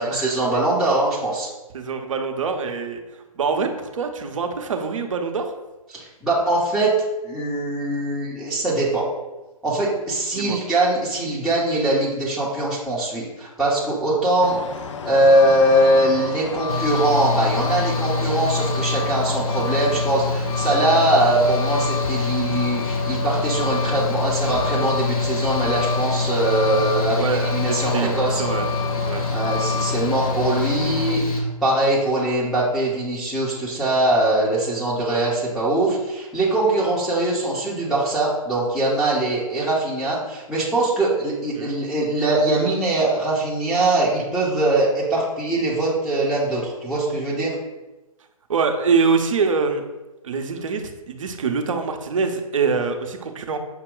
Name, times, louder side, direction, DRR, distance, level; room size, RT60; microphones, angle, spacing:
voice 1, 0.0-1.5 5.9-6.9 7.2-9.1 9.6-14.6 15.0-27.2 27.5-28.4 29.3-47.5, right 1 dB, ahead, -9 dB, 0.6 m, -22 dB
voice 2, 1.7-5.5 10.4-10.6 27.1-28.7 29.0-29.2 41.6-41.7 48.5-49.8 50.2-53.6, right 5 dB, 60° right, 6 dB, 0.6 m, -24 dB
Truck, 14.4-31.2, left 6 dB, 55° left, 0.4 m, -30 dB
Mechanical fan, 16.7-31.4, left 3 dB, 75° left, 0.9 m, -26 dB
5.9 x 2.2 x 3.7 m, 1.1 s
figure-of-eight pair, 130°, 19 cm